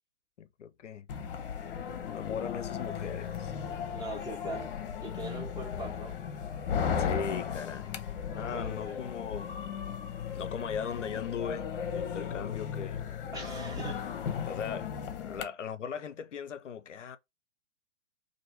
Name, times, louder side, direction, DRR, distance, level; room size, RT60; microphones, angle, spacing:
voice 1, 0.4-1.1 2.0-3.5 7.0-7.9 8.3-9.5 10.3-13.0 14.4-17.2, left 7 dB, 80° left, 0.5 m, -38 dB
sound 1, 1.1-15.4, left 7 dB, 50° left, 0.7 m, -36 dB
voice 2, 3.9-4.7 5.0-6.2 8.5-9.0 13.3-14.0, right 2 dB, 10° right, 1.1 m, -40 dB
2.9 x 2.5 x 4.2 m
figure-of-eight pair, 110°, 36 cm